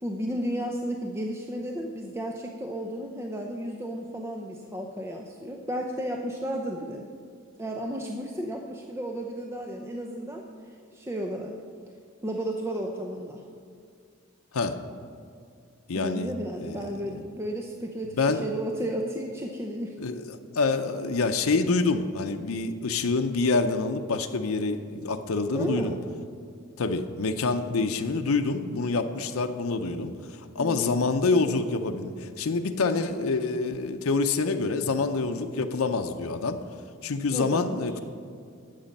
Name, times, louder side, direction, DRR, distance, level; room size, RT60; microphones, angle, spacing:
voice 1, 0.0-7.0 7.6-11.6 12.2-13.4 15.9-20.0 25.5-26.0 30.6-31.0 35.3-35.5 37.3-37.8, right 1 dB, 10° right, 1 dB, 0.6 m, -33 dB
voice 2, 15.9-16.3 16.6-17.0 18.2-18.4 20.0-26.0 26.8-36.6 37.0-38.0, left 3 dB, 90° left, 6 dB, 0.6 m, -27 dB
11.5 x 7.9 x 5.3 m, 2.3 s
head